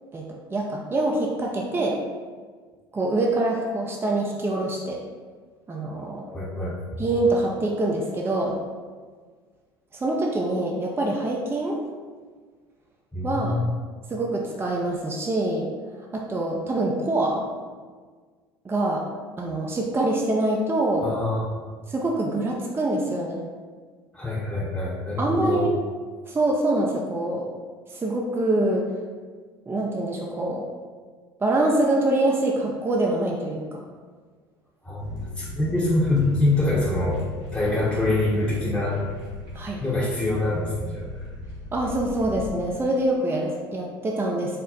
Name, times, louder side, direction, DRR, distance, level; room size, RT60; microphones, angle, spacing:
voice 1, 0.5-2.0 2.9-5.0 5.7-6.2 7.0-8.6 9.9-11.8 13.2-13.6 14.1-15.7 16.1-17.4 18.6-19.1 19.4-21.1 21.9-23.4 25.2-25.7 26.3-27.5 27.9-28.8 29.7-30.6 31.4-33.8 39.5-39.8 41.7-44.6, right 2 dB, 20° right, -1 dB, 0.5 m, -25 dB
voice 2, 6.3-7.0 13.1-13.6 21.0-21.5 24.1-25.7 34.8-35.1 35.4-37.2 37.5-39.0 39.8-41.1, left 2 dB, 5° left, -8 dB, 0.9 m, -25 dB
sound 1, 35.0-42.5, left 1 dB, 80° right, 1.1 m, -37 dB
4.1 x 2.0 x 3.8 m, 1.5 s
figure-of-eight pair, 65°, 13 cm